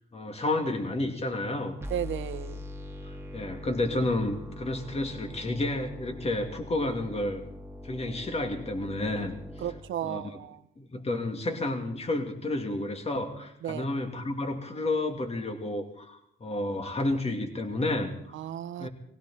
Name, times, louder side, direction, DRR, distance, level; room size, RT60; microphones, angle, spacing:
voice 1, 0.1-1.8 3.0-7.4 7.8-9.3 10.0-10.2 10.8-18.1 18.8-18.9, left 2 dB, 30° left, 4 dB, 2.6 m, -31 dB
sound 1, 1.8-9.8, left 1 dB, 15° right, 1.8 m, -42 dB
voice 2, 1.9-2.5 9.6-10.6 13.6-13.8 18.3-18.9, right 11 dB, 75° right, 14 dB, 0.8 m, -34 dB
19.5 x 16.5 x 4.3 m, 0.72 s
cardioid pair, 90°, 20 cm